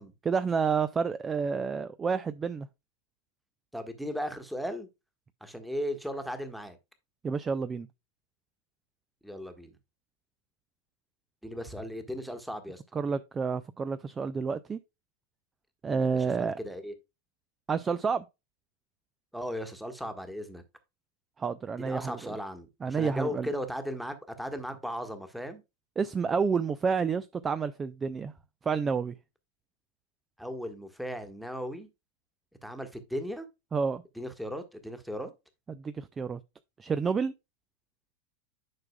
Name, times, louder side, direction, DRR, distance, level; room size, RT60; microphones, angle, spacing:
voice 1, 0.3-2.7 7.2-7.9 12.9-14.8 15.8-16.6 17.7-18.2 21.4-22.4 22.8-23.5 26.0-28.3 28.6-29.1 33.7-34.0 35.7-36.4 36.8-37.3, right 5 dB, 20° right, 0.4 m, -29 dB
voice 2, 3.7-4.9 5.4-6.8 9.2-9.7 11.4-12.8 15.9-16.9 19.3-20.6 21.8-25.6 30.4-31.9 32.6-33.4 34.2-35.3, equal, ahead, 1.4 m, -37 dB
10.5 x 5.9 x 2.2 m
figure-of-eight pair, 90°, 0 cm